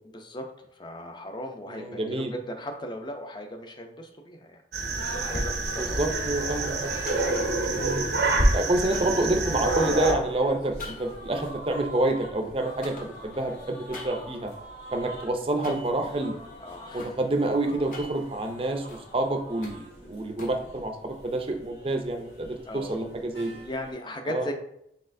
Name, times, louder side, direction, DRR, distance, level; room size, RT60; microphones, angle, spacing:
voice 1, 0.1-0.5 0.7-4.6 5.0-6.3 7.2-7.4 16.6-17.1 22.7-23.0 23.6-24.5, equal, 25° left, 4 dB, 0.4 m, -37 dB
voice 2, 1.7-2.3 5.8-6.9 7.7-8.0 8.5-14.5 14.9-16.3 16.9-18.8 19.1-23.6 24.3-24.5, right 2 dB, 30° right, 5 dB, 0.5 m, -28 dB
sound 1, 4.7-10.1, right 3 dB, 75° right, 0.7 m, -28 dB
sound 2, 5.1-23.9, equal, 80° left, 1.6 m, -37 dB
sound 3, 7.0-7.7 8.9-9.9 10.8-12.5 12.8-14.5 15.6-16.0 16.6-17.2 17.7-19.0 19.4-20.7, left 2 dB, 50° left, 1.0 m, -44 dB
4.2 x 3.9 x 2.6 m, 0.74 s
head